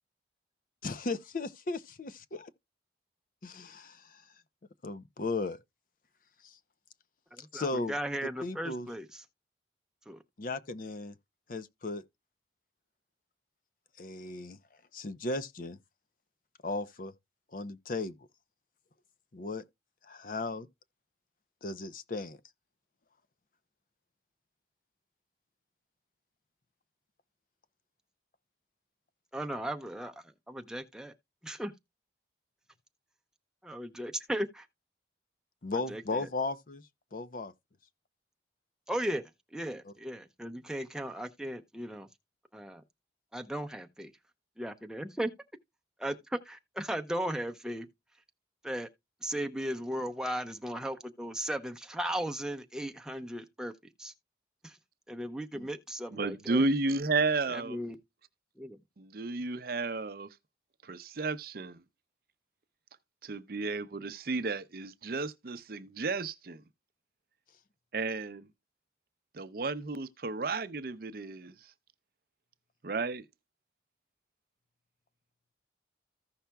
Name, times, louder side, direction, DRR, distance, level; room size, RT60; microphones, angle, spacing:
voice 1, 0.8-2.1 3.4-4.2 4.8-5.6 6.4-6.6 7.4-7.9 8.2-8.9 10.4-11.1 11.5-12.0 14.0-14.6 14.9-15.8 16.6-17.1 17.5-18.2 19.3-19.6 20.0-20.7 21.6-22.4 35.6-36.8 37.1-37.5 39.8-39.9 55.5-55.7, left 3 dB, 50° left, 0.6 m, -36 dB
voice 2, 7.5-9.1 10.1-10.2 29.3-30.1 30.5-31.1 31.4-31.7 33.6-34.6 35.9-36.3 38.9-39.2 39.5-42.1 42.5-42.8 43.3-44.1 44.6-45.3 46.0-47.9 48.6-48.9 49.2-53.7 54.0-54.1 54.6-54.7 55.1-56.6 57.5-58.0 58.6-58.8, right 1 dB, 5° right, 0.7 m, -36 dB
voice 3, 56.1-57.8 59.0-60.3 60.8-61.8 63.2-66.6 67.9-68.5 69.3-71.5 72.8-73.2, right 3 dB, 55° right, 0.6 m, -32 dB
15.0 x 5.7 x 2.3 m
head